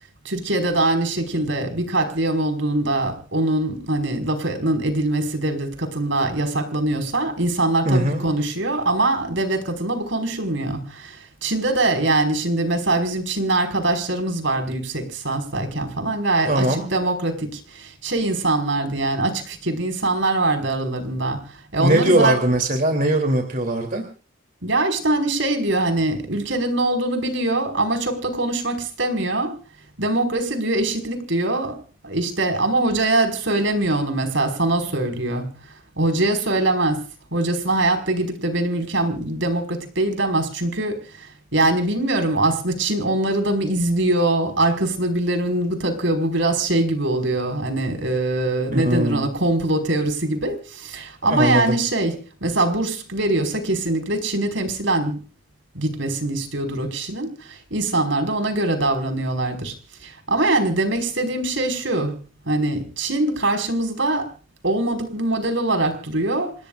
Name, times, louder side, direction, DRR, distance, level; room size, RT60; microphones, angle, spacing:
voice 1, 0.3-22.4 24.6-29.6 30.0-31.8 32.0-35.5 36.0-37.0 37.3-55.2 55.7-59.7 60.0-64.3 64.6-66.6, right 2 dB, 65° right, 5.3 m, -23 dB
voice 2, 7.8-8.2 16.5-16.8 21.8-24.0 48.7-49.2 51.2-51.8, right 1 dB, 45° right, 3.2 m, -20 dB
29.0 x 18.5 x 2.5 m
head